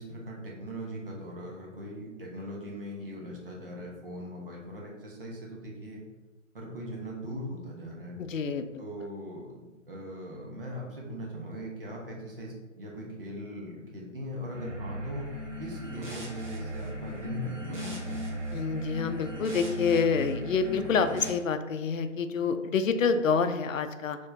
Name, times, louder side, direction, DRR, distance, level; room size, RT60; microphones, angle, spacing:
voice 1, 0.0-6.0 6.5-8.2 8.8-15.3 15.6-18.2, equal, 45° right, -2 dB, 1.0 m, -40 dB
voice 2, 8.2-8.8 18.5-24.2, left 5 dB, 80° left, 9 dB, 0.5 m, -27 dB
sound 1, 14.5-21.3, equal, 65° right, 1.2 m, -37 dB
4.1 x 3.1 x 2.7 m, 1.1 s
hypercardioid pair, 165°, 39 cm